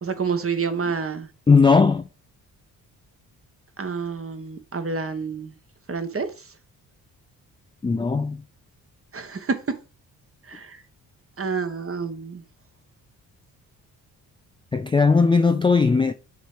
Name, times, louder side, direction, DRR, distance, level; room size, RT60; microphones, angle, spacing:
voice 1, 0.0-1.3 3.8-5.5 5.9-6.3 9.1-9.6 10.5-10.8 11.4-12.4, right 5 dB, 30° right, 1.2 m, -28 dB
voice 2, 1.5-2.1 7.8-8.4 14.7-16.1, left 4 dB, 15° left, 0.4 m, -18 dB
6.3 x 3.1 x 4.9 m
hypercardioid pair, 45°, 42 cm